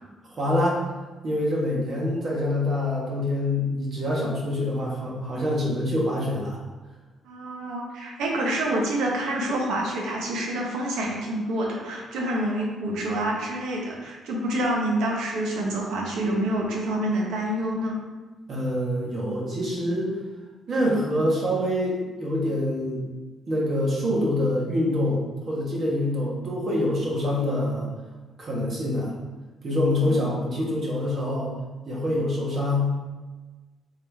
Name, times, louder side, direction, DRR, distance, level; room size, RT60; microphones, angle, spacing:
voice 1, 0.4-0.8 1.2-6.6 18.5-20.1 20.7-23.0 23.5-27.9 28.4-29.1 29.6-31.5 31.9-32.9, left 1 dB, 50° right, -4 dB, 1.3 m, -25 dB
voice 2, 7.2-18.0 30.0-30.3, right 1 dB, 85° right, -1 dB, 1.0 m, -27 dB
3.8 x 3.3 x 3.4 m, 1.3 s
cardioid pair, 90°, 0 cm